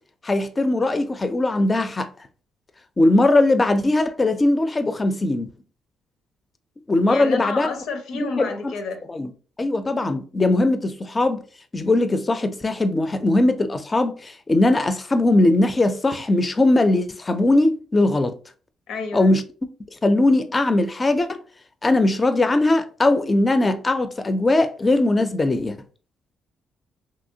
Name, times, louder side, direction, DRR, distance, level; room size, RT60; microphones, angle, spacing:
voice 1, 0.2-2.1 3.0-5.5 6.9-7.7 8.1-8.7 9.1-9.3 9.6-11.4 11.7-18.3 19.1-19.4 20.0-21.4 21.8-25.8, left 2 dB, 25° left, 0.4 m, -20 dB
voice 2, 7.1-9.0 18.9-19.4, left 4 dB, 80° left, 0.6 m, -30 dB
2.9 x 2.7 x 2.6 m
cardioid pair, 90°, 0 cm